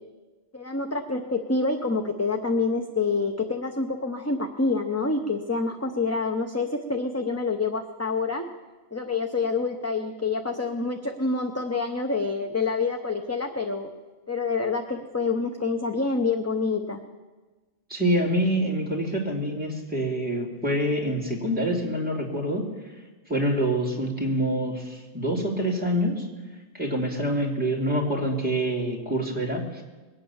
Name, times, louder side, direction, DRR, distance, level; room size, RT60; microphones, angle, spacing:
voice 1, 0.5-8.5 8.9-13.9 14.3-17.0, left 3 dB, 15° left, 4 dB, 0.7 m, -27 dB
voice 2, 17.9-22.7 23.3-26.3 26.7-29.8, equal, 10° right, -2 dB, 2.7 m, -26 dB
21.5 x 8.8 x 7.1 m, 1.3 s
omnidirectional pair, 1.1 m